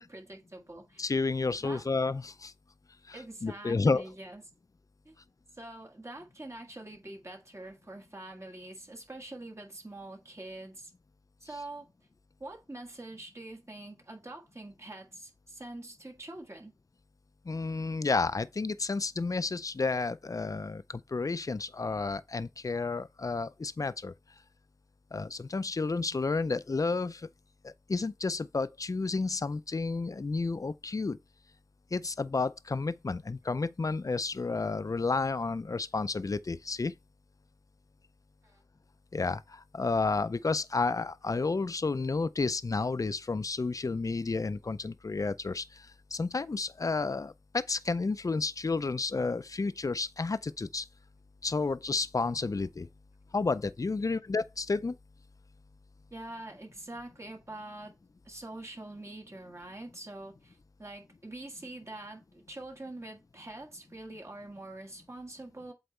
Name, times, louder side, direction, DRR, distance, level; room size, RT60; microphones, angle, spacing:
voice 1, 0.0-1.0 1.4-1.9 3.1-4.4 5.0-5.1 5.5-10.9 11.4-11.9 12.4-16.7 33.1-33.2 38.4-38.6 54.0-54.1 56.1-57.9 58.2-65.7, right 2 dB, 45° right, 1.6 m, -45 dB
voice 2, 1.0-2.5 3.1-4.0 17.5-24.1 25.1-27.3 27.6-31.2 31.9-36.9 39.1-50.9 51.4-52.9 53.3-55.0, left 3 dB, 55° left, 0.4 m, -31 dB
7.9 x 4.0 x 3.3 m
wide cardioid pair, 55°, 7 cm